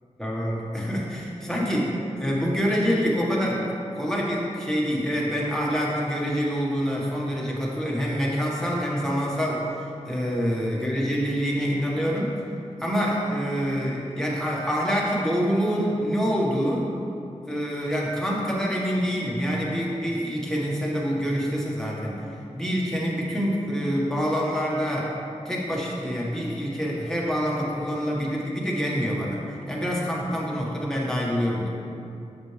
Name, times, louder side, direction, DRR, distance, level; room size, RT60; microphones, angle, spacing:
voice 1, 0.2-3.6 3.9-12.4 12.8-16.9 17.5-22.2 22.5-25.1 25.5-31.7, equal, 5° left, -5 dB, 1.8 m, -26 dB
8.0 x 6.1 x 3.5 m, 2.6 s
cardioid pair, 45°, 13 cm